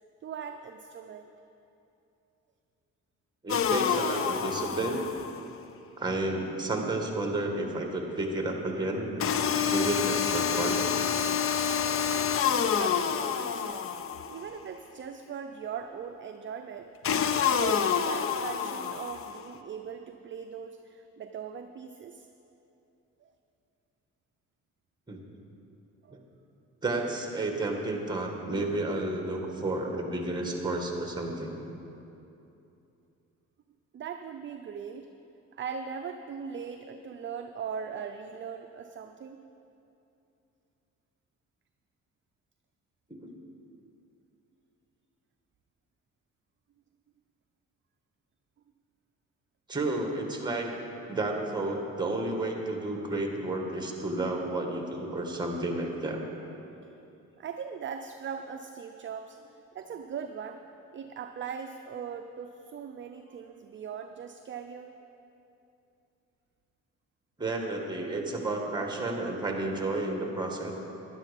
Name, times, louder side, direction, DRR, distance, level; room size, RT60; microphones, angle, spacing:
voice 1, 0.2-1.3 12.5-13.8 14.2-16.9 17.4-22.3 23.2-23.3 26.0-26.3 33.9-35.1 35.5-39.4 53.0-53.1 56.8-56.9 57.4-60.6 60.9-64.9, right 7 dB, 40° right, 6 dB, 0.5 m, -40 dB
voice 2, 3.4-5.0 6.0-9.2 9.7-10.8 25.1-25.2 26.1-26.2 26.8-31.6 43.1-43.3 49.7-50.7 51.1-56.2 67.4-70.7, right 2 dB, 15° right, 2 dB, 1.9 m, -31 dB
sound 1, 3.5-5.5 9.2-14.5 17.0-19.4, left 7 dB, 45° left, 0.6 m, -28 dB
11.5 x 11.0 x 5.3 m, 2.8 s
cardioid pair, 90°, 30 cm